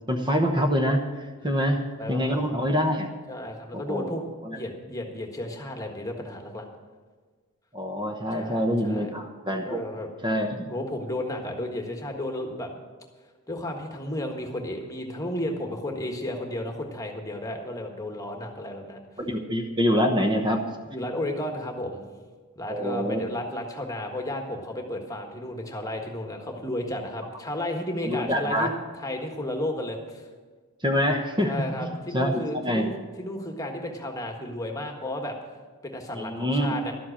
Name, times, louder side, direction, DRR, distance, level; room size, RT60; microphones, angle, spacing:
voice 1, 0.1-1.0 1.4-1.8 2.1-3.1 3.7-4.6 7.7-9.8 10.2-10.7 19.2-20.6 22.7-23.2 28.0-28.7 30.8-31.5 31.8-32.9 36.1-36.7, equal, 20° right, 2 dB, 1.0 m, -25 dB
voice 2, 2.0-2.5 3.3-4.2 4.5-6.7 8.3-9.1 9.6-10.1 10.7-12.7 13.5-19.0 20.9-22.0 22.5-30.3 31.4-32.9 33.2-35.3 35.8-36.9, left 1 dB, 15° left, 3 dB, 1.5 m, -33 dB
12.5 x 7.8 x 8.7 m, 1.5 s
head